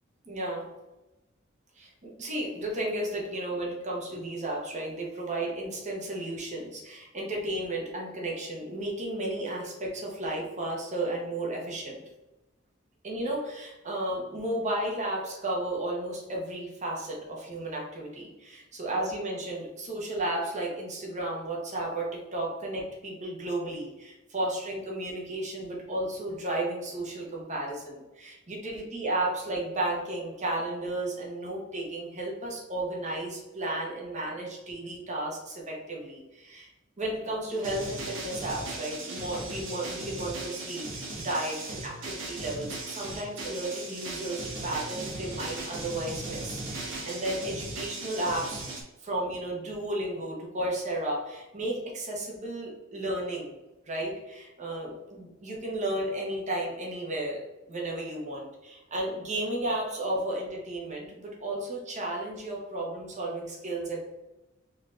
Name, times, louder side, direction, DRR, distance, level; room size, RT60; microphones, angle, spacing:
voice 1, 0.2-0.7 1.8-12.0 13.0-36.7 37.0-40.9 41.2-48.6 49.0-53.5 53.9-57.4 57.7-64.0, right 1 dB, 35° right, -2 dB, 1.2 m, -33 dB
sound 1, 37.5-48.8, right 2 dB, 65° right, 1.2 m, -38 dB
4.5 x 2.8 x 3.7 m, 1.0 s
head